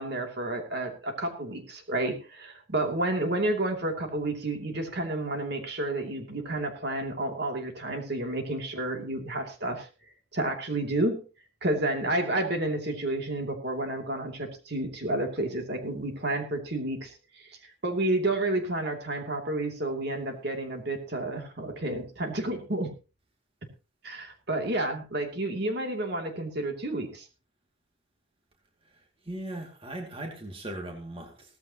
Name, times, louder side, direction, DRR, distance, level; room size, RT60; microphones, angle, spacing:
voice 1, 0.0-9.9 10.3-11.2 11.6-22.9 24.0-27.3, right 2 dB, 55° right, 3 dB, 2.8 m, -30 dB
voice 2, 28.9-31.6, right 1 dB, 25° right, 2 dB, 2.4 m, -39 dB
17.0 x 14.5 x 3.0 m, 0.33 s
head